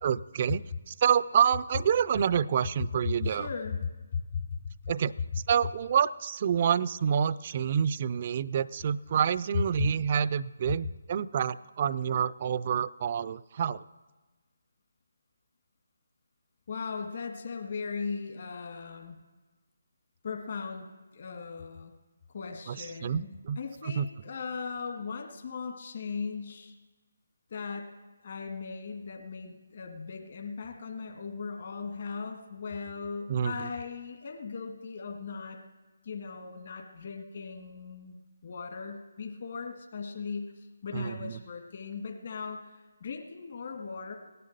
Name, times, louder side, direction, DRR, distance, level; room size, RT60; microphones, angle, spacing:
voice 1, 0.0-3.5 4.9-5.1 5.5-13.8 22.7-23.6 23.8-24.1 33.3-33.7 40.9-41.4, right 8 dB, 40° right, 18 dB, 0.4 m, -28 dB
voice 2, 3.2-4.7 9.8-9.9 16.7-19.2 20.2-21.9 22.3-26.8 27.5-27.9 28.2-35.6 36.0-38.2 38.4-44.1, left 5 dB, 50° left, 3 dB, 1.8 m, -38 dB
17.5 x 11.0 x 6.6 m, 1.2 s
figure-of-eight pair, 150°, 0 cm